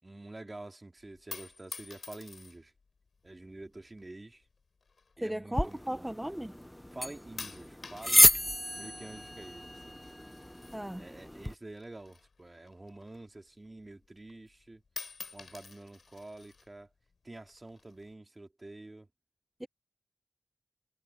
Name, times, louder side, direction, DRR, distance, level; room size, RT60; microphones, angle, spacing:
voice 1, 0.0-2.7 3.2-4.4 5.2-6.1 6.9-10.0 11.0-14.8 15.3-16.9 17.2-19.1, right 2 dB, 30° right, 3.4 m, -48 dB
sound 1, 1.0-2.8 3.6-4.1 4.9-6.3 6.6-7.0 7.4-11.4 11.7-13.4 13.8-13.9 14.2-14.6 14.9-16.7 17.5-18.1, left 4 dB, 70° left, 4.2 m, -48 dB
voice 2, 5.2-6.6 10.7-11.1 19.6-19.7, right 1 dB, 10° right, 1.2 m, -36 dB
sound 2, 5.5-11.5, left 1 dB, 10° left, 0.8 m, -30 dB
wide cardioid pair, 75°, 0 cm